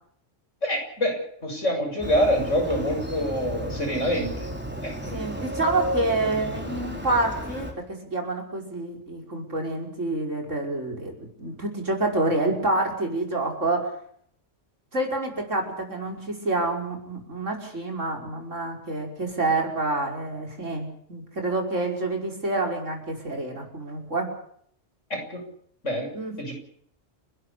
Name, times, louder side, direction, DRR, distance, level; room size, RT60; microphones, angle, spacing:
voice 1, 0.6-4.5 4.8-5.1 25.1-25.4 25.8-26.1 26.4-26.5, equal, 80° left, 3 dB, 7.0 m, -26 dB
Motorcycle, 2.0-7.7, equal, 10° right, 3.8 m, -33 dB
voice 2, 5.1-13.9 14.9-24.3 26.1-26.4, right 2 dB, 85° right, 2 dB, 5.9 m, -28 dB
29.5 x 12.5 x 8.5 m, 0.65 s
omnidirectional pair, 1.3 m